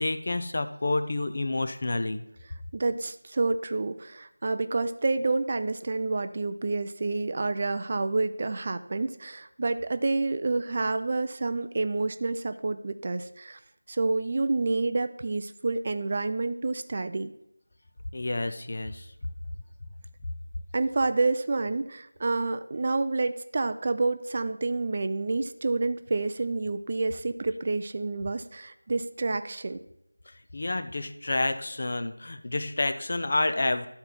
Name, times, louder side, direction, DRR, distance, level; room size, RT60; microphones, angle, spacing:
voice 1, 0.0-2.2 18.1-19.0 30.5-33.9, left 2 dB, 40° left, 9 dB, 0.6 m, -29 dB
voice 2, 2.7-13.6 13.9-17.3 20.7-29.8, right 3 dB, 30° right, 10 dB, 0.4 m, -28 dB
12.0 x 4.4 x 5.4 m, 0.76 s
figure-of-eight pair, 170°, 0 cm